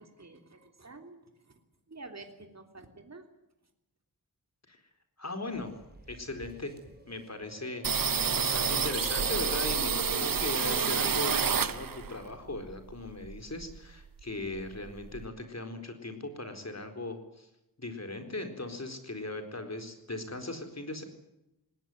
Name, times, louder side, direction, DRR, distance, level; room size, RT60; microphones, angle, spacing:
voice 1, 0.0-1.5 1.9-3.3 6.8-6.9, right 3 dB, 45° right, 5 dB, 3.2 m, -49 dB
voice 2, 5.2-5.7 6.1-6.7 7.1-17.5 17.8-21.0, left 2 dB, 45° left, 7 dB, 4.3 m, -39 dB
sound 1, 5.5-12.1, right 1 dB, 25° right, 4.1 m, -46 dB
sound 2, 7.8-12.2 12.5-13.9 14.2-14.3 14.6-15.3, right 6 dB, 65° right, 1.0 m, -29 dB
20.0 x 18.5 x 9.2 m, 0.91 s
wide cardioid pair, 80°, 36 cm